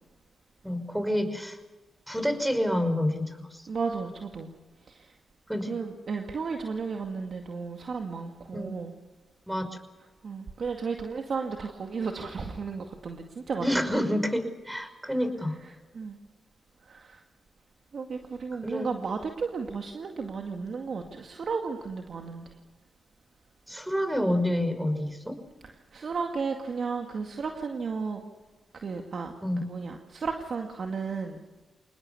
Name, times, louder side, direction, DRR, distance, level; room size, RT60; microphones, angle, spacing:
voice 1, 0.6-1.6 2.1-3.7 5.5-5.8 8.5-8.7 9.5-9.7 13.6-15.6 18.6-18.9 23.7-25.4 29.4-29.6, left 1 dB, 5° right, 8 dB, 5.6 m, -28 dB
voice 2, 3.7-4.5 4.9-5.2 5.7-8.9 10.2-14.0 15.1-15.2 15.9-16.2 16.8-17.2 17.9-22.6 25.9-28.2 28.7-29.4 29.7-31.5, right 5 dB, 65° right, 3 dB, 2.2 m, -34 dB
27.5 x 20.0 x 7.0 m, 1.2 s
supercardioid pair, 50°, 0 cm